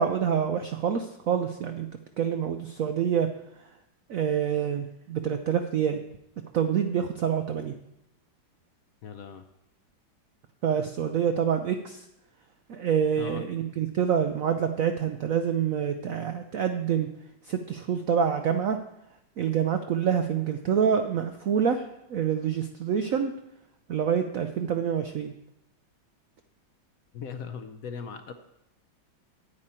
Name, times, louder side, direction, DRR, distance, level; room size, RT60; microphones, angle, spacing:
voice 1, 0.0-1.9 2.2-3.3 4.1-6.0 6.5-7.7 10.6-12.0 12.7-17.1 17.5-18.8 19.4-21.8 22.1-23.3 23.9-25.3, right 8 dB, 80° right, 7 dB, 0.7 m, -26 dB
voice 2, 9.0-9.4 13.2-13.4 27.1-28.3, left 6 dB, 65° left, 8 dB, 0.8 m, -38 dB
9.8 x 9.8 x 4.3 m, 0.85 s
omnidirectional pair, 2.2 m